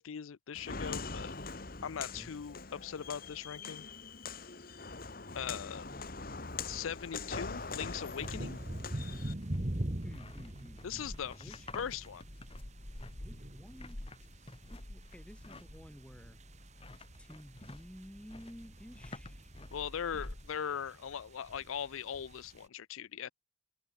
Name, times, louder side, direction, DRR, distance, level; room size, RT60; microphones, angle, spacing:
voice 1, 0.0-1.3 1.8-3.9 5.3-5.9 6.7-8.6 10.8-12.2 19.7-23.3, left 8 dB, 85° left, 0.5 m, -40 dB
Walk footsteps, 0.5-9.3, left 4 dB, 45° left, 1.8 m, -42 dB
sound 1, 6.0-20.5, left 2 dB, 25° left, 1.2 m, -50 dB
sound 2, 7.3-22.6, right 1 dB, 35° right, 1.4 m, -44 dB
voice 2, 10.0-11.7 13.2-16.4 16.9-19.5, equal, 5° left, 1.4 m, -53 dB
open air
head